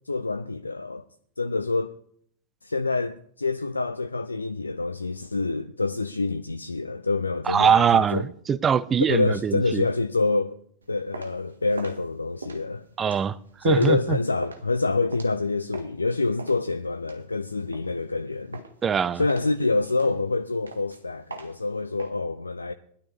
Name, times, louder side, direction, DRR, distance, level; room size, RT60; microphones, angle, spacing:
voice 1, 0.1-1.0 1.4-2.0 2.6-8.3 9.1-10.6 10.9-12.9 13.6-18.6 19.1-22.7, left 3 dB, 80° left, 0.5 m, -26 dB
voice 2, 7.5-9.8 13.0-13.4 13.6-14.2 18.8-19.2, right 7 dB, 20° right, 0.5 m, -22 dB
sound 1, 10.8-16.0 16.4-18.2 18.5-18.9 19.3-22.1, right 3 dB, 75° right, 1.6 m, -43 dB
20.0 x 12.0 x 3.4 m
figure-of-eight pair, 90°, 0 cm